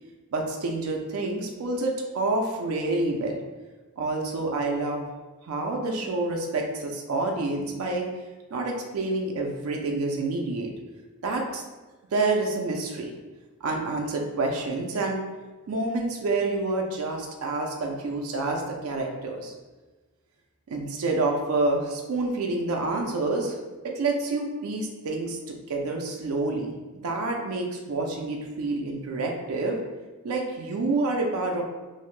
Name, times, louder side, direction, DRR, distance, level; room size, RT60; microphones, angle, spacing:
voice 1, 0.3-3.4 4.0-5.1 5.4-8.1 8.5-10.7 11.2-11.6 12.1-13.1 13.6-15.2 15.7-19.5 20.7-23.6 23.8-26.7 27.0-29.8 30.2-31.6, right 2 dB, 70° right, 1 dB, 0.4 m, -28 dB
2.6 x 2.1 x 3.0 m, 1.2 s
head